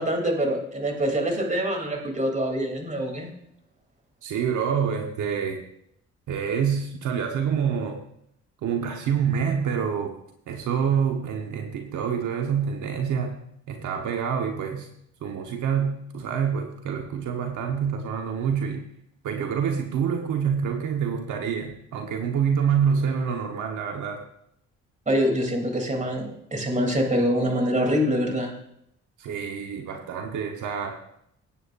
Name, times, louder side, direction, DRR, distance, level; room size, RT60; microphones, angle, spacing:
voice 1, 0.0-3.3 25.1-28.5, equal, 25° right, 2 dB, 3.2 m, -25 dB
voice 2, 4.2-5.6 6.3-8.0 8.6-10.1 10.5-13.4 13.7-14.9 15.2-18.9 19.2-24.2 29.2-31.0, right 7 dB, 80° right, 3 dB, 1.2 m, -27 dB
19.5 x 9.0 x 2.6 m, 0.74 s
cardioid pair, 90°, 30 cm